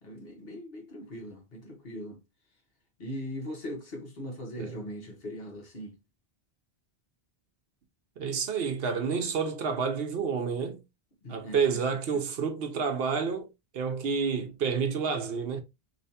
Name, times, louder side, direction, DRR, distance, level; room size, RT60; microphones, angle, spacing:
voice 1, 0.0-2.2 3.0-6.0 11.2-11.8 12.1-12.3, equal, 60° left, 1.3 m, -40 dB
voice 2, 8.2-10.8 11.3-13.5 13.7-15.6, right 5 dB, 65° right, 0.9 m, -29 dB
3.3 x 3.0 x 2.7 m
omnidirectional pair, 1.1 m